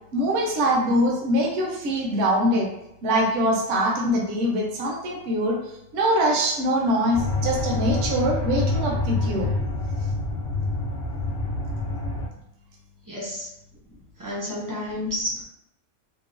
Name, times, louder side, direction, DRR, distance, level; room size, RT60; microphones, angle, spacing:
voice 1, 0.1-2.7 3.0-9.5, equal, 60° right, -2 dB, 0.9 m, -23 dB
sound 1, 7.1-12.3, left 2 dB, 65° left, 0.8 m, -27 dB
voice 2, 13.1-13.5 14.2-15.4, left 1 dB, 30° right, -7 dB, 0.3 m, -30 dB
2.9 x 2.1 x 2.4 m, 0.81 s
omnidirectional pair, 1.5 m